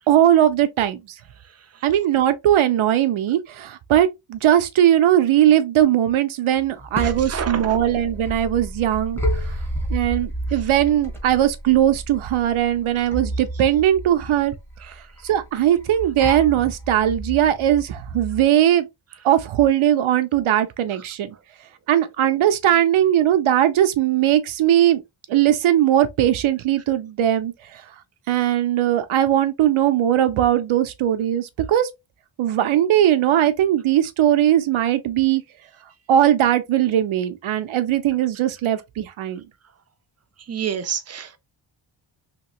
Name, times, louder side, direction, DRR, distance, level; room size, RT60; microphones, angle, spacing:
voice 1, 0.1-1.0 1.8-9.2 9.9-14.5 15.2-18.9 19.2-21.3 21.9-25.0 25.3-27.5 28.3-31.9 32.4-35.4 36.1-39.4, right 11 dB, 75° right, 0.7 m, -19 dB
sound 1, 6.6-18.4, right 1 dB, 5° left, 0.9 m, -31 dB
voice 2, 7.0-7.8 9.4-9.5 14.8-14.9 40.5-41.4, right 8 dB, 35° right, 0.5 m, -29 dB
3.1 x 3.0 x 2.9 m
wide cardioid pair, 170°, 48 cm